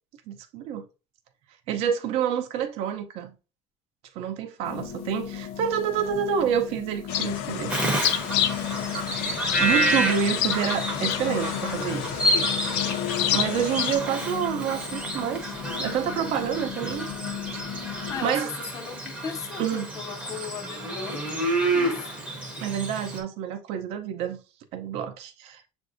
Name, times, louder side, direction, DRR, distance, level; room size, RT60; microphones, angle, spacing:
voice 1, 0.3-0.9 1.7-3.3 4.2-7.8 9.6-12.8 13.3-17.1 17.5-18.5 19.6-19.9 22.6-24.4 24.7-25.6, right 8 dB, 50° right, 0.6 m, -28 dB
sound 1, 4.6-18.3, left 10 dB, 50° left, 0.8 m, -36 dB
sound 2, 7.1-14.0, left 10 dB, 75° left, 0.6 m, -29 dB
Bird vocalization bird call bird song, 7.7-23.2, right 1 dB, 10° right, 0.7 m, -29 dB
voice 2, 18.1-22.2, left 6 dB, 25° left, 0.4 m, -37 dB
6.8 x 2.6 x 2.5 m
cardioid pair, 180°, 13 cm